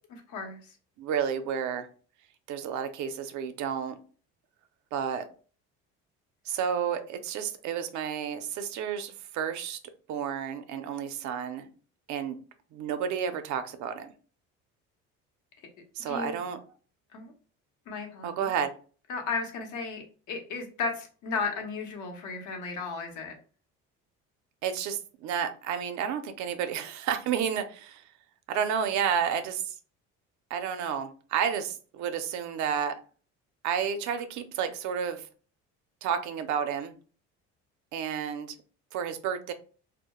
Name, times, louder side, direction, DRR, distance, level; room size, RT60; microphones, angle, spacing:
voice 1, 0.1-0.7 16.1-16.4 17.1-17.3 17.9-18.5 19.1-23.4, left 4 dB, 70° left, 3 dB, 0.8 m, -35 dB
voice 2, 1.0-1.9 2.5-4.0 4.9-5.3 6.5-9.8 10.1-11.7 12.1-12.4 12.7-14.1 15.9-16.6 18.2-18.7 24.6-28.0 28.5-29.7 30.5-33.0 33.6-35.3 36.0-36.9 37.9-38.6 38.9-39.5, right 8 dB, 65° right, 9 dB, 0.5 m, -31 dB
2.2 x 2.1 x 2.9 m, 0.40 s
supercardioid pair, 85°, 32 cm